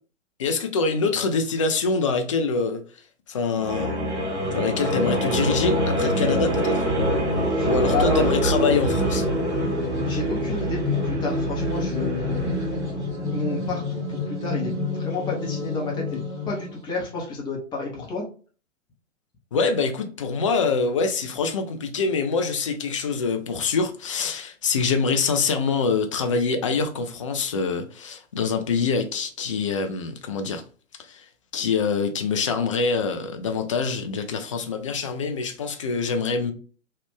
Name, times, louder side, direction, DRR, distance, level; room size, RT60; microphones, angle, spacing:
voice 1, 0.4-2.8 3.3-3.9 4.5-6.8 7.6-9.2 19.5-30.6 31.1-31.2 31.5-36.5, left 4 dB, 30° left, 0.3 m, -25 dB
sound 1, 3.5-16.8, equal, 60° right, 1.5 m, -25 dB
voice 2, 7.6-8.3 10.0-12.6 13.2-18.3, left 3 dB, 10° left, 0.8 m, -30 dB
3.1 x 2.4 x 3.5 m
figure-of-eight pair, 115°, 38 cm